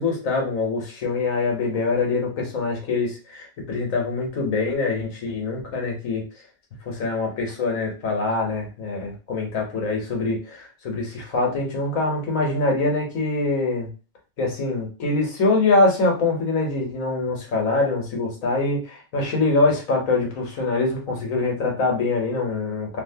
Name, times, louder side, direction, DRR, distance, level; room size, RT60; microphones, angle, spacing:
voice 1, 0.0-6.2 6.9-13.9 14.4-23.0, left 3 dB, 80° left, 0 dB, 1.4 m, -24 dB
2.9 x 2.8 x 2.7 m, 0.33 s
omnidirectional pair, 1.4 m